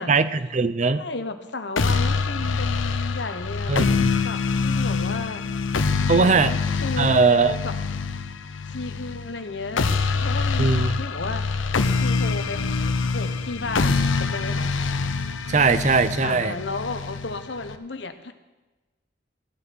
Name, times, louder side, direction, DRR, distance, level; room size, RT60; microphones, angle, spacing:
voice 1, 0.0-1.0 3.7-4.1 6.1-6.5 7.0-7.5 10.6-10.9 15.5-16.6, right 4 dB, 35° right, 14 dB, 0.5 m, -20 dB
voice 2, 0.8-3.8 4.2-5.4 6.1-7.7 8.7-11.4 12.0-14.7 16.2-18.3, left 3 dB, 65° left, 9 dB, 1.1 m, -33 dB
sound 1, 1.8-17.8, left 4 dB, 80° left, 0.8 m, -25 dB
14.0 x 9.7 x 6.1 m, 1.1 s
head